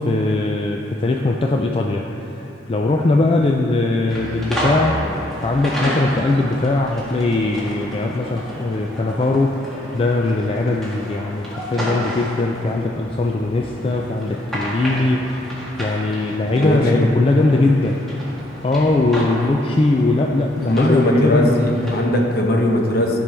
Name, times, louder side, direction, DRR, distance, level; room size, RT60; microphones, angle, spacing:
voice 1, 0.0-18.0 18.6-21.6, left 2 dB, 30° left, 1 dB, 0.4 m, -20 dB
sound 1, 4.1-22.0, equal, ahead, 1.6 m, -31 dB
voice 2, 16.5-17.2 20.7-23.2, left 1 dB, 55° left, 1 dB, 1.0 m, -19 dB
13.0 x 5.4 x 3.4 m, 2.9 s
head